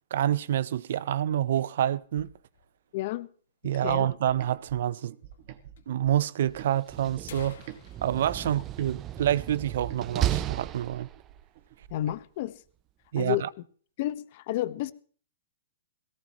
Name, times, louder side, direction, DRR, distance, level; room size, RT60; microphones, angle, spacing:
voice 1, 0.1-2.3 3.6-5.1 5.9-7.6 8.0-11.1 13.1-13.5, right 11 dB, 65° right, 0.6 m, -27 dB
sound 1, 1.1-2.9 3.2-3.3 3.5-3.6 4.3-4.4 5.3-5.4 5.8-5.9 6.6-6.7 7.0-9.6 10.0-10.1 10.5-10.8 11.2-11.8, left 6 dB, 75° left, 3.1 m, -50 dB
voice 2, 2.9-3.3 3.6-4.1 11.9-12.6 13.2-13.5 14.0-14.9, left 15 dB, 45° left, 1.1 m, -31 dB
sound 2, 4.2-7.8 8.2-12.2, right 11 dB, 50° right, 1.8 m, -48 dB
Slam, 6.8-11.5, right 13 dB, 25° right, 0.6 m, -34 dB
18.0 x 17.5 x 3.0 m
hypercardioid pair, 150°, 0 cm